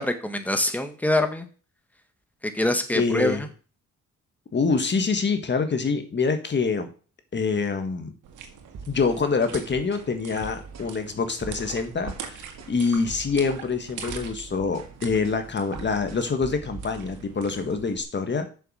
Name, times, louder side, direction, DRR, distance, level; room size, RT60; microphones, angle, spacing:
voice 1, 0.0-1.5 2.5-3.5, left 1 dB, 5° left, 7 dB, 1.7 m, -24 dB
voice 2, 2.9-3.4 4.5-6.9 7.3-8.1 8.9-18.5, left 4 dB, 35° left, 7 dB, 1.8 m, -26 dB
sound 1, 8.2-18.0, right 7 dB, 80° right, 2.0 m, -42 dB
sound 2, 8.7-9.6 9.9-10.1 10.4-11.0 11.3-12.3 12.6-12.8 13.1-13.6 13.9-17.2, right 5 dB, 60° right, 2.0 m, -43 dB
7.0 x 6.8 x 6.5 m, 0.37 s
cardioid pair, 90°, 30 cm